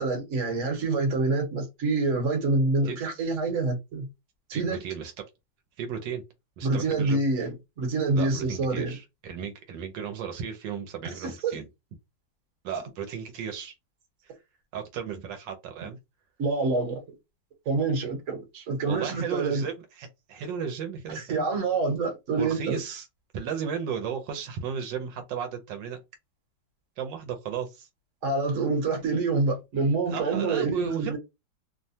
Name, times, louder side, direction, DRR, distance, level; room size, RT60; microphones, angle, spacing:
voice 1, 0.0-4.1 4.5-4.8 6.6-8.9 11.0-11.6 16.4-17.0 17.6-19.7 21.1-22.8 28.2-31.2, right 3 dB, 50° right, 1.3 m, -27 dB
voice 2, 4.5-5.1 5.8-6.2 6.6-7.2 8.2-11.7 12.6-13.8 14.2-14.3 14.7-16.0 18.8-21.5 22.4-23.1 23.3-26.0 27.0-27.9 30.1-31.2, right 7 dB, 80° right, 1.3 m, -34 dB
3.1 x 2.2 x 2.6 m
omnidirectional pair, 2.0 m